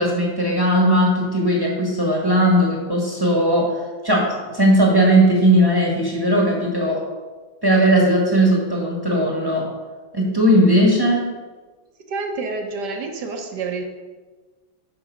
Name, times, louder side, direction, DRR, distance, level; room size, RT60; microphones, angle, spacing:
voice 1, 0.0-3.8 4.0-7.0 7.6-9.7 10.1-11.4, equal, 15° right, -2 dB, 1.1 m, -18 dB
voice 2, 12.1-13.8, right 4 dB, 65° right, 3 dB, 1.5 m, -28 dB
8.8 x 5.5 x 5.3 m, 1.3 s
omnidirectional pair, 2.1 m